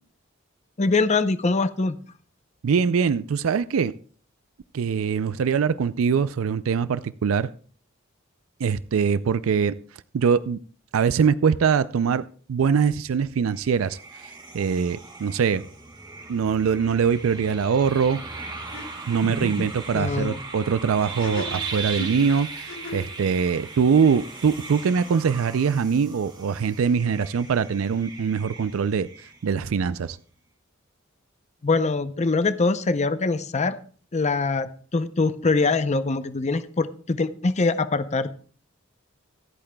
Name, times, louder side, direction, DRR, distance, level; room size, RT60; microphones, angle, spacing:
voice 1, 0.8-2.0 19.2-19.7 19.9-20.4 31.6-33.8 34.1-38.3, left 3 dB, 35° left, 12 dB, 0.6 m, -23 dB
voice 2, 2.6-3.9 4.7-7.5 8.6-9.8 10.1-10.6 10.9-12.2 12.5-15.6 16.3-18.2 19.1-29.1 29.4-30.2, right 6 dB, 85° right, 15 dB, 0.4 m, -23 dB
sound 1, 13.4-29.7, right 4 dB, 20° right, 2.0 m, -39 dB
sound 2, 18.3-18.4 18.7-18.9 21.0-23.2, left 2 dB, 65° left, 3.1 m, -37 dB
25.5 x 8.6 x 2.2 m, 0.43 s
head